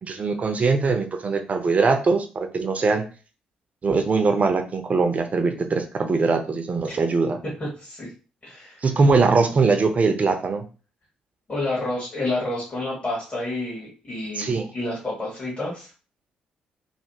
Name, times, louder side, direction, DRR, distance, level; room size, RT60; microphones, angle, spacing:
voice 1, 0.0-3.0 3.8-7.4 8.8-10.6 14.4-14.7, right 4 dB, 40° right, 6 dB, 0.6 m, -21 dB
voice 2, 7.6-8.1 8.4-8.8 11.5-15.9, left 2 dB, 35° left, -6 dB, 1.6 m, -29 dB
3.3 x 2.6 x 2.8 m, 0.35 s
figure-of-eight pair, 40°, 4 cm